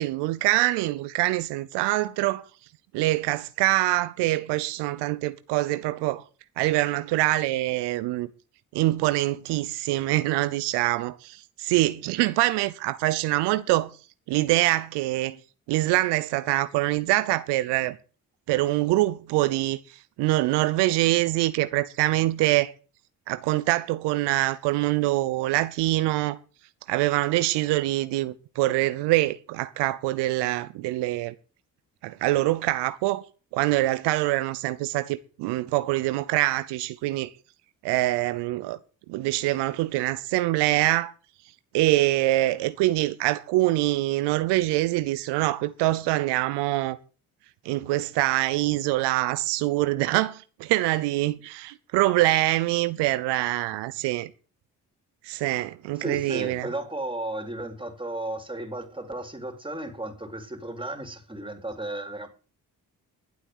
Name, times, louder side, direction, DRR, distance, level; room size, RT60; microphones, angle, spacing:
voice 1, 0.0-2.4 2.9-6.2 6.6-8.3 8.7-13.9 14.3-15.4 15.7-18.0 18.5-19.8 20.2-22.7 23.3-26.4 26.9-31.3 32.0-33.2 33.5-37.3 37.8-38.8 39.1-41.1 41.7-47.0 47.6-54.3 55.2-56.7, right 17 dB, 90° right, 0.7 m, -24 dB
voice 2, 56.0-62.3, right 1 dB, 10° right, 3.9 m, -34 dB
12.0 x 8.1 x 8.0 m
supercardioid pair, 50°, 40 cm